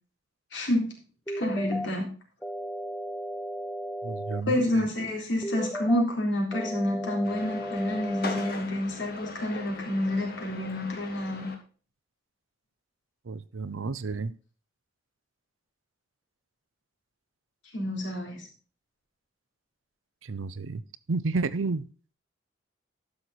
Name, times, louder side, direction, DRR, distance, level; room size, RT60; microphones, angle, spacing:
voice 1, 0.5-0.9 1.4-2.1 4.5-11.5 17.7-18.5, left 1 dB, 65° left, -1 dB, 3.8 m, -28 dB
sound 1, 1.3-1.9 2.4-4.4 5.4-6.0 6.5-8.5, equal, 10° left, 0.5 m, -35 dB
voice 2, 4.0-4.9 13.3-14.3 20.2-20.8 21.1-21.9, right 3 dB, 80° right, 16 dB, 0.6 m, -31 dB
sound 2, 7.2-11.5, left 3 dB, 50° left, 1.7 m, -40 dB
12.0 x 6.4 x 4.2 m, 0.39 s
head